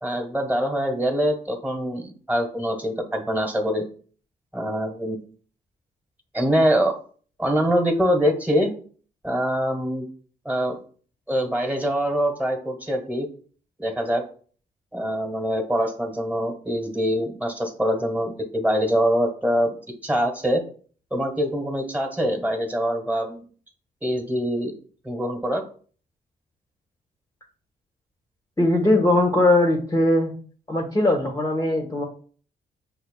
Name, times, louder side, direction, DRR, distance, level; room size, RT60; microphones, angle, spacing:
voice 1, 0.0-3.9 4.5-5.2 6.3-6.9 7.4-8.7 9.2-10.1 10.4-10.8 11.3-13.3 13.8-14.2 14.9-19.8 20.0-20.6 21.1-23.4 24.0-24.7 25.0-25.6, equal, 10° right, 3 dB, 1.3 m, -24 dB
voice 2, 28.6-30.3 30.7-32.0, left 1 dB, 15° left, 0 dB, 1.0 m, -20 dB
6.4 x 2.3 x 2.2 m, 0.43 s
supercardioid pair, 45°, 20 cm